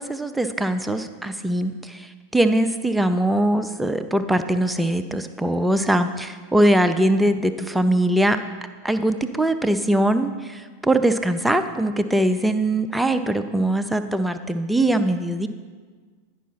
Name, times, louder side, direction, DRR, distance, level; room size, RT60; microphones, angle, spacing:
voice 1, 0.0-8.4 8.8-15.5, right 1 dB, 5° right, 8 dB, 0.5 m, -21 dB
10.0 x 5.5 x 5.7 m, 1.5 s
figure-of-eight pair, 90°, 0 cm